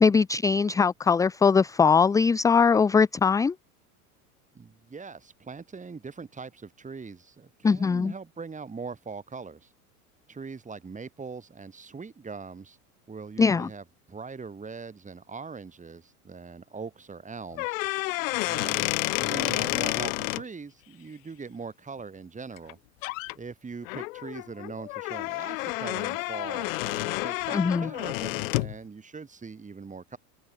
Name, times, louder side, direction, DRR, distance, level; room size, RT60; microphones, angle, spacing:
voice 1, 0.0-3.5 7.6-8.1 13.4-13.7 27.5-27.9, left 5 dB, 10° left, 0.5 m, -21 dB
voice 2, 4.5-9.7 10.3-12.8 13.1-17.8 18.4-18.9 19.2-22.8 23.3-30.2, right 5 dB, 15° right, 4.3 m, -41 dB
sound 1, 17.5-20.4 22.6-22.7 23.0-23.3 23.8-28.8, left 22 dB, 60° left, 2.0 m, -30 dB
hypercardioid pair, 85°, 44 cm